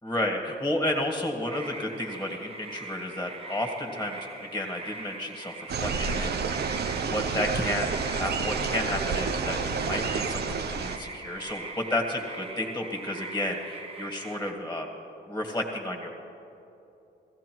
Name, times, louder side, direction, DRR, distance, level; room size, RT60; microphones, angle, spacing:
voice 1, 0.0-6.7 6.9-9.6 9.8-14.9 15.3-16.1, left 1 dB, 10° left, 2 dB, 1.8 m, -32 dB
sound 1, 1.5-14.5, right 3 dB, 30° right, 1.4 m, -42 dB
sound 2, 5.7-11.0, right 5 dB, 55° right, 0.9 m, -29 dB
16.0 x 15.0 x 4.6 m, 2.8 s
cardioid pair, 90°, 20 cm